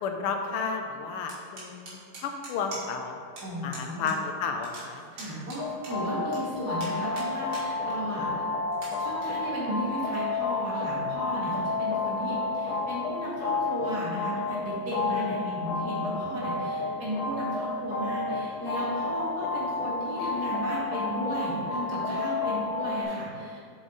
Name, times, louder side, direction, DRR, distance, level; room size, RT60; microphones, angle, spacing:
voice 1, 0.0-2.0 2.2-3.2 3.6-5.0 15.0-15.3 22.2-22.4, left 5 dB, 90° left, 5 dB, 1.6 m, -32 dB
sound 1, 1.3-3.1 3.4-3.5 3.7-4.2 4.4-6.4 6.8-7.7 8.1-8.2 8.7-8.9, right 2 dB, 65° right, 2.8 m, -43 dB
voice 2, 3.4-4.1 5.1-8.3 9.0-23.6, equal, 45° right, -8 dB, 2.6 m, -35 dB
sound 2, 5.6-23.0, left 3 dB, 70° left, 1.7 m, -31 dB
7.1 x 6.7 x 4.0 m, 2.3 s
omnidirectional pair, 2.4 m